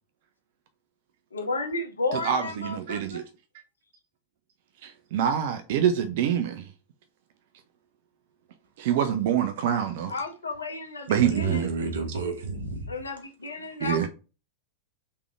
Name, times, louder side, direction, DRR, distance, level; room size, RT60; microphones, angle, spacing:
voice 1, 1.3-3.2 10.1-11.6 12.9-14.1, left 3 dB, 75° left, 0.8 m, -33 dB
voice 2, 2.1-3.2 4.8-6.7 8.8-10.1 11.1-11.7 13.8-14.1, right 9 dB, 50° right, 0.4 m, -26 dB
voice 3, 11.1-12.9, right 4 dB, 70° right, 1.1 m, -30 dB
3.4 x 3.3 x 3.4 m
figure-of-eight pair, 90°, 0 cm